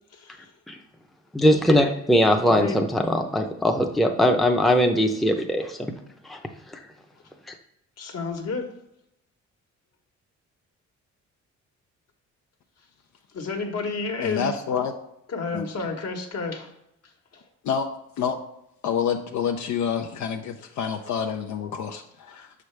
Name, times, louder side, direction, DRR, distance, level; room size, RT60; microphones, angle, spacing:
voice 1, 0.1-0.5 2.4-2.8 8.0-8.7 13.3-14.5 15.3-16.7 17.3-17.4, left 4 dB, 55° left, 3 dB, 1.3 m, -31 dB
voice 2, 1.3-5.9 6.2-6.4 6.7-6.8, equal, ahead, 3 dB, 0.6 m, -21 dB
voice 3, 14.2-14.9 15.5-15.7 17.6-17.9 18.2-18.4 18.8-22.5, left 7 dB, 70° left, 4 dB, 0.6 m, -27 dB
6.5 x 4.9 x 3.3 m, 0.81 s
cardioid pair, 90°, 30 cm